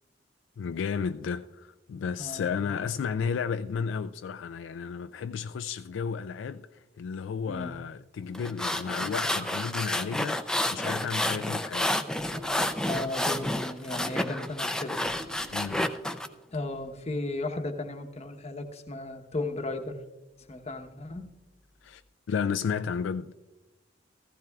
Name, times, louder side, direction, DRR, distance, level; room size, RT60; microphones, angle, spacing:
voice 1, 0.6-12.0 15.5-15.9 21.8-22.0 22.3-23.3, left 6 dB, 80° left, 0.3 m, -33 dB
voice 2, 2.2-2.5 7.5-7.7 12.8-15.3 16.5-20.0 20.5-21.3, left 2 dB, 35° left, 1.0 m, -35 dB
sound 1, 8.3-16.3, left 1 dB, 5° left, 0.5 m, -30 dB
Animal, 8.8-8.9 9.1-10.0 12.1-13.0 15.0-16.3, equal, 75° right, 2.4 m, -47 dB
15.5 x 15.0 x 2.3 m
head